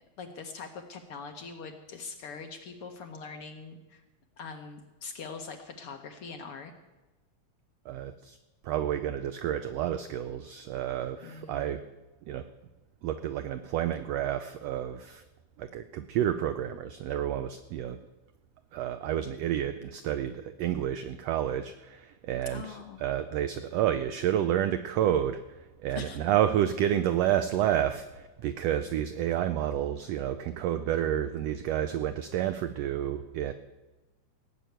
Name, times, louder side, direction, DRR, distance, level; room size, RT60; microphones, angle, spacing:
voice 1, 0.2-4.0 4.4-6.7 11.2-11.7 22.5-23.0 25.9-26.2, left 5 dB, 65° left, 5 dB, 1.5 m, -42 dB
voice 2, 7.9-8.4 8.6-11.8 12.2-12.4 13.0-15.2 15.6-18.0 18.7-33.5, right 10 dB, 85° right, 11 dB, 1.4 m, -30 dB
17.5 x 6.9 x 9.1 m, 1.1 s
omnidirectional pair, 3.6 m